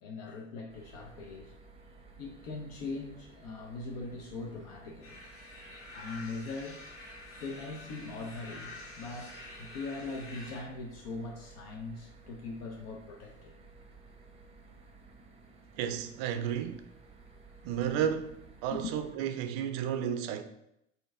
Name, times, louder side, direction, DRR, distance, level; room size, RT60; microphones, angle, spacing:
voice 1, 0.0-1.5 2.2-5.2 5.9-6.8 7.4-13.5 18.7-18.9, left 3 dB, 55° left, 0.7 m, -41 dB
sound 1, 0.7-19.2, right 3 dB, 15° right, 0.7 m, -55 dB
sound 2, 5.0-10.6, left 2 dB, 35° left, 1.6 m, -48 dB
voice 2, 15.8-16.8 17.6-18.4 18.6-20.4, right 9 dB, 50° right, 0.5 m, -32 dB
4.4 x 2.7 x 3.6 m
figure-of-eight pair, 65°, 36 cm